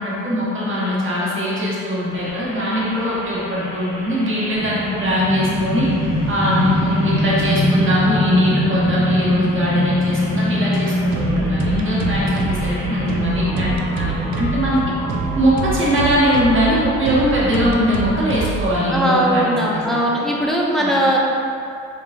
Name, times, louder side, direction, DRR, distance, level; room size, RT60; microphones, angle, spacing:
voice 1, 0.0-5.9 6.3-14.8 15.3-20.0 20.8-20.9, equal, 40° right, -7 dB, 1.3 m, -21 dB
sound 1, 2.1-15.8, left 1 dB, 25° left, 1.0 m, -35 dB
sound 2, 4.5-16.8, left 1 dB, 60° left, 1.2 m, -22 dB
sound 3, 11.1-18.8, right 5 dB, 70° right, 0.5 m, -26 dB
voice 2, 18.9-21.2, right 1 dB, ahead, -4 dB, 0.5 m, -19 dB
4.6 x 3.2 x 2.5 m, 2.6 s
cardioid pair, 90°, 30 cm